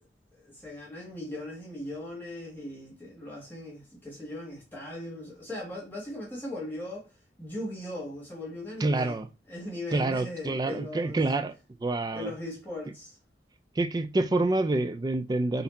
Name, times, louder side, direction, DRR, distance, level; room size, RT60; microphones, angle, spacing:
voice 1, 0.4-7.1 7.4-9.2 9.5-11.2 12.1-13.2, left 1 dB, 10° left, 1.3 m, -39 dB
voice 2, 8.8-9.3 9.9-11.5 11.8-12.3 13.8-15.6, right 2 dB, 20° right, 0.3 m, -27 dB
4.1 x 2.7 x 4.0 m
head